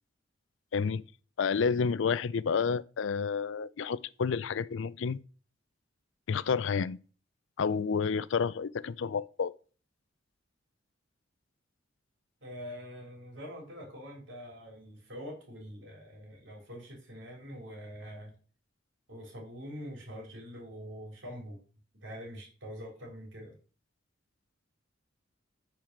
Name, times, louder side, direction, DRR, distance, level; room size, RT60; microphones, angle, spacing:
voice 1, 0.7-1.0 1.4-5.2 6.3-7.0 7.6-9.5, left 5 dB, 70° left, 0.4 m, -30 dB
voice 2, 12.4-18.3 19.1-21.6 22.0-23.5, equal, 65° right, 3.5 m, -44 dB
8.8 x 4.8 x 5.8 m
head